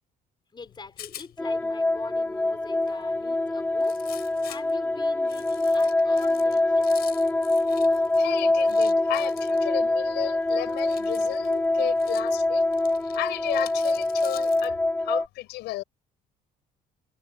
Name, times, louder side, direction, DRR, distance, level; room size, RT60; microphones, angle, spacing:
voice 1, 0.5-6.9, left 4 dB, 25° left, 4.8 m, -45 dB
Rattle, 0.6-14.7, left 12 dB, 65° left, 6.1 m, -48 dB
sound 1, 1.4-15.3, left 2 dB, 10° left, 0.6 m, -24 dB
voice 2, 7.9-12.9 13.1-15.8, left 18 dB, 90° left, 5.7 m, -34 dB
cardioid pair, 110°, 17 cm